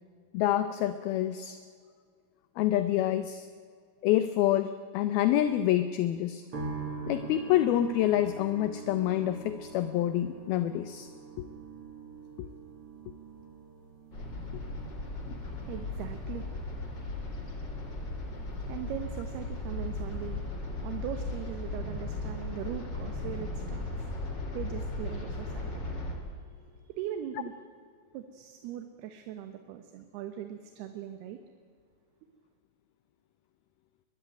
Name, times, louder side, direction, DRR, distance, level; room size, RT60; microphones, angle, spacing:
voice 1, 0.3-1.6 2.6-3.5 4.0-6.4 7.1-11.1 12.4-12.5 15.3-15.4, left 12 dB, 75° left, 11 dB, 2.3 m, -27 dB
sound 1, 6.5-21.8 22.0-22.9, right 4 dB, 35° right, 2.8 m, -46 dB
sound 2, 14.1-26.1, left 2 dB, 25° left, 3.2 m, -37 dB
voice 2, 15.0-24.2 24.5-25.8 26.9-27.5 28.1-31.4, right 10 dB, 70° right, 8 dB, 2.9 m, -41 dB
22.0 x 22.0 x 9.2 m, 2.1 s
omnidirectional pair, 5.2 m